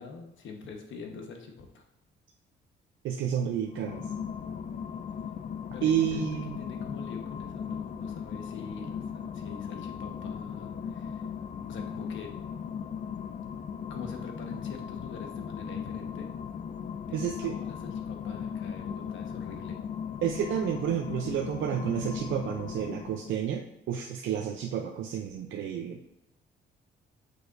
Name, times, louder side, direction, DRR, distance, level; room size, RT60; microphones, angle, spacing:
voice 1, 0.0-1.8 5.7-6.3 6.6-11.3 11.7-12.3 13.9-16.3 17.0-19.8, left 5 dB, 75° left, 3 dB, 1.3 m, -44 dB
voice 2, 3.0-4.1 5.8-6.6 17.1-17.6 20.2-26.0, right 9 dB, 75° right, 2 dB, 0.6 m, -30 dB
sound 1, 3.6-23.4, left 7 dB, 40° left, 0.4 m, -37 dB
6.8 x 6.4 x 2.6 m, 0.87 s
cardioid pair, 90°, 20 cm